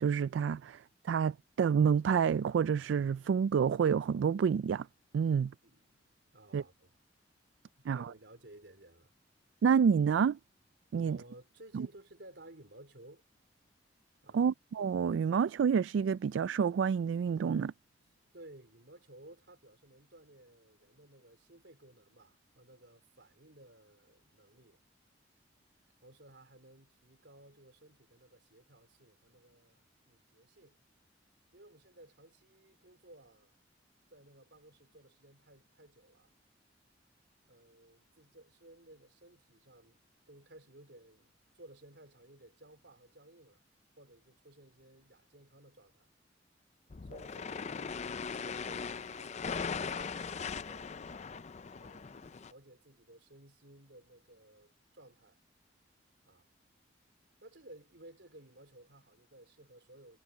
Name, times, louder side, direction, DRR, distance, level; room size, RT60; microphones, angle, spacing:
voice 1, 0.0-4.9 5.1-5.5 6.5-6.6 7.9-8.1 9.6-10.4 10.9-11.2 11.7-11.9 14.3-17.7, right 7 dB, 90° right, 0.3 m, -28 dB
voice 2, 6.3-7.0 7.8-9.1 10.9-13.2 14.2-14.5 18.3-24.8 26.0-30.8 31.5-33.6 34.1-36.3 37.5-43.6 44.0-46.1 47.0-51.1 51.8-55.4 56.2-56.5 57.4-60.2, right 1 dB, 70° right, 3.9 m, -57 dB
sound 1, 46.9-52.5, left 5 dB, 40° left, 0.5 m, -39 dB
head